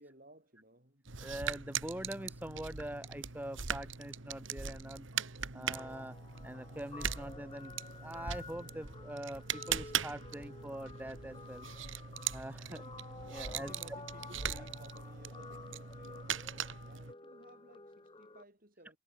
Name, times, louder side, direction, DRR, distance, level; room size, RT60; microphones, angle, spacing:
voice 1, 0.0-1.1 12.6-13.1 13.6-16.4 16.8-19.0, right 1 dB, 45° right, 7.4 m, -58 dB
sound 1, 1.1-17.1, right 7 dB, 75° right, 1.7 m, -40 dB
voice 2, 1.2-5.1 5.5-6.1 6.4-11.7 12.3-12.8 13.3-13.7, right 1 dB, 10° right, 1.3 m, -44 dB
Guitar, 5.7-18.4, left 3 dB, 25° left, 1.2 m, -52 dB
head